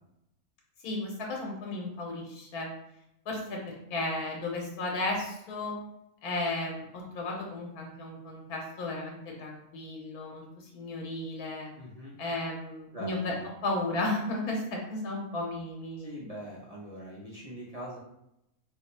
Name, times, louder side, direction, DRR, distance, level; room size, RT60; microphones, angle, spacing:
voice 1, 0.8-2.7 3.3-5.7 6.2-11.7 12.2-13.3 13.6-16.2, left 2 dB, 90° left, -1 dB, 1.2 m, -34 dB
voice 2, 11.8-12.2 12.9-13.5 16.0-18.0, right 1 dB, 40° right, -6 dB, 0.5 m, -42 dB
3.1 x 2.1 x 4.0 m, 0.83 s
omnidirectional pair, 1.5 m